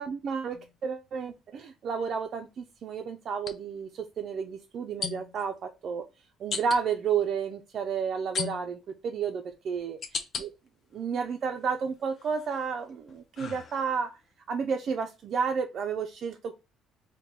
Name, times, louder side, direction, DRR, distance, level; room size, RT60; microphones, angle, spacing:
voice 1, 0.0-6.0 6.4-8.8 9.0-10.0 10.4-10.5 10.9-14.2 14.5-16.5, right 6 dB, 45° right, 0.3 m, -31 dB
sound 1, 0.5-0.7 3.4-3.5 5.0-5.4 6.5-6.8 8.3-8.9 9.5-10.5 11.0-11.7 12.1-14.1, left 6 dB, 40° left, 0.4 m, -37 dB
3.4 x 2.2 x 3.1 m
cardioid pair, 160°, 0 cm